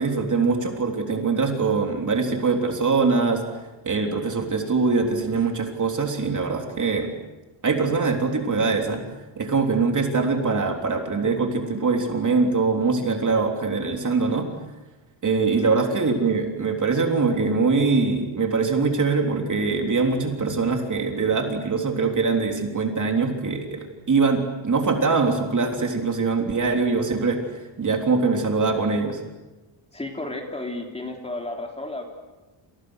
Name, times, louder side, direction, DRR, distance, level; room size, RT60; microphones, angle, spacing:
voice 1, 0.0-3.4 3.8-7.1 7.6-9.0 9.4-14.5 15.2-27.4 27.8-29.2, right 4 dB, 35° right, 3 dB, 3.6 m, -23 dB
voice 2, 29.9-32.0, left 2 dB, 10° left, 2 dB, 3.4 m, -32 dB
29.0 x 28.5 x 6.5 m, 1.1 s
wide cardioid pair, 155°, 50 cm